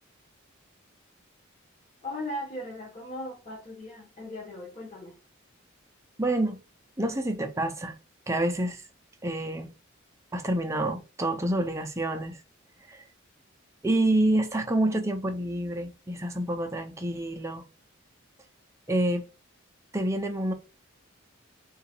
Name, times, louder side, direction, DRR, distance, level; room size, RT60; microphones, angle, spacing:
voice 1, 2.0-5.1, left 1 dB, 35° left, 1.1 m, -38 dB
voice 2, 6.2-6.6 7.0-7.9 8.3-8.8 9.2-9.7 10.3-12.4 12.9-13.0 13.8-17.6 18.9-19.2 19.9-20.5, right 1 dB, 15° right, 0.5 m, -27 dB
3.8 x 2.4 x 4.3 m
head